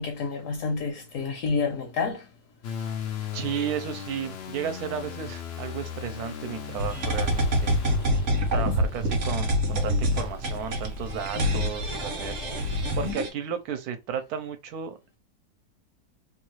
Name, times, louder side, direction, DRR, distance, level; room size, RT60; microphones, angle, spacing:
voice 1, 0.0-2.3 11.3-11.5, left 4 dB, 65° left, 0.9 m, -29 dB
sound 1, 2.6-13.1, left 6 dB, 85° left, 0.5 m, -37 dB
voice 2, 3.3-7.7 8.5-15.2, right 7 dB, 75° right, 1.1 m, -34 dB
sound 2, 6.8-13.3, equal, 55° right, 1.0 m, -26 dB
2.9 x 2.3 x 3.0 m
omnidirectional pair, 1.7 m